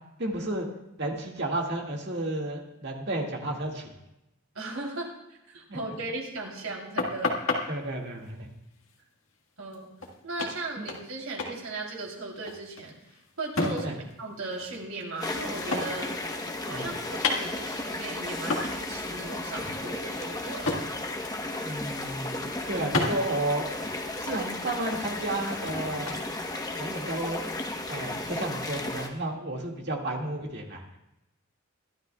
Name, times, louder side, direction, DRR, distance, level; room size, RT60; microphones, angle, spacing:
voice 1, 0.2-0.7 1.0-3.9 7.7-8.5 10.8-10.9 13.8-14.0 16.7-16.9 21.6-23.7 24.2-26.2 26.8-27.5 27.9-30.8, right 1 dB, 50° right, 0 dB, 1.9 m, -32 dB
voice 2, 4.5-7.3 9.6-9.9 10.2-12.9 13.4-16.1 16.6-20.7, right 2 dB, 85° right, -1 dB, 3.2 m, -37 dB
sound 1, 7.0-7.6 9.7-9.8 10.0-10.1 10.4-11.1 11.4-11.6 11.9-14.1 14.4-16.1 16.4-17.9 18.5-18.8 19.1-19.3 19.6-20.9 21.2-21.5 21.8-22.3 22.9-23.1 23.7-26.2, left 3 dB, 75° left, 1.7 m, -32 dB
sound 2, 15.2-29.1, left 2 dB, 15° left, 1.0 m, -34 dB
23.0 x 12.0 x 2.3 m, 0.89 s
head